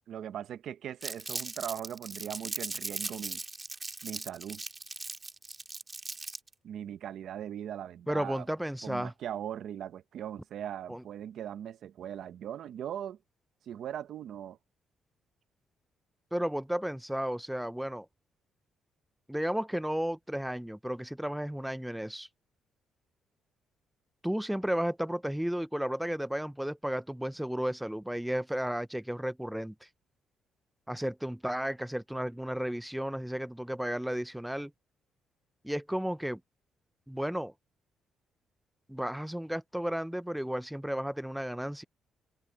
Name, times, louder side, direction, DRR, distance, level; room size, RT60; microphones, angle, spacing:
voice 1, 0.1-3.4 4.0-4.6 6.6-8.5 8.8-13.2 13.7-14.6, right 10 dB, 70° right, 1.0 m, -39 dB
Crumpling crinkling, 1.0-6.5, right 3 dB, 25° right, 2.4 m, -39 dB
voice 2, 8.1-9.1 10.9-11.0 16.3-18.1 19.3-22.3 24.2-29.7 30.9-34.7 35.6-36.4 37.1-37.5 38.9-41.8, equal, 5° right, 0.6 m, -33 dB
open air
cardioid pair, 90°, 0 cm